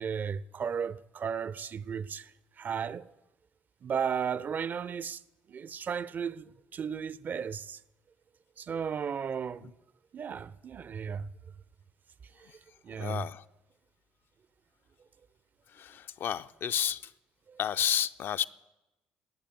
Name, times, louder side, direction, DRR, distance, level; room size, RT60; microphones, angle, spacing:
voice 1, 0.0-2.3 2.6-3.0 3.8-5.2 5.5-6.4 6.7-7.8 8.6-9.7 10.1-11.3 12.4-12.5 12.8-13.2 17.5-17.6, right 7 dB, 40° right, 0.6 m, -34 dB
voice 2, 13.0-13.4 15.7-17.1 17.6-18.4, left 9 dB, 50° left, 0.5 m, -31 dB
18.0 x 8.6 x 9.3 m
figure-of-eight pair, 50°, 5 cm